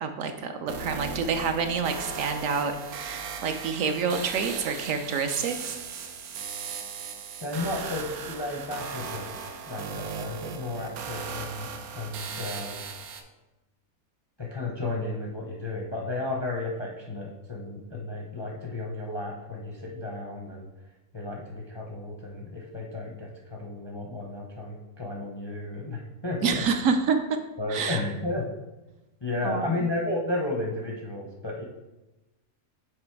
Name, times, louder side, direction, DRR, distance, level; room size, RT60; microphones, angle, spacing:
voice 1, 0.0-5.8 26.4-27.2 27.7-28.0 29.4-29.9, right 5 dB, 70° right, 6 dB, 0.9 m, -28 dB
sound 1, 0.7-13.2, right 6 dB, 90° right, 1.1 m, -37 dB
voice 2, 7.4-9.3 9.7-11.7 11.9-12.8 14.4-20.7 21.1-26.6 27.6-28.5 29.2-31.6, left 2 dB, 30° left, -1 dB, 0.4 m, -33 dB
6.8 x 3.1 x 4.5 m, 1.0 s
omnidirectional pair, 1.5 m